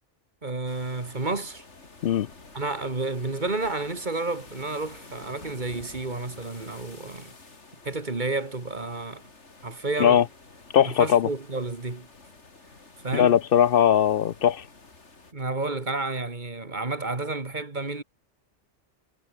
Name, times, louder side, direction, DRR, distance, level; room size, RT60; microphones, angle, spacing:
voice 1, 0.4-1.6 2.5-7.3 7.8-9.2 9.6-10.2 10.8-12.1 13.0-13.4 15.3-18.0, right 3 dB, 40° right, 2.3 m, -31 dB
sound 1, 0.7-15.3, left 3 dB, 80° left, 3.4 m, -49 dB
voice 2, 10.7-11.3 13.1-14.6, left 9 dB, 60° left, 0.7 m, -20 dB
omnidirectional pair, 1.2 m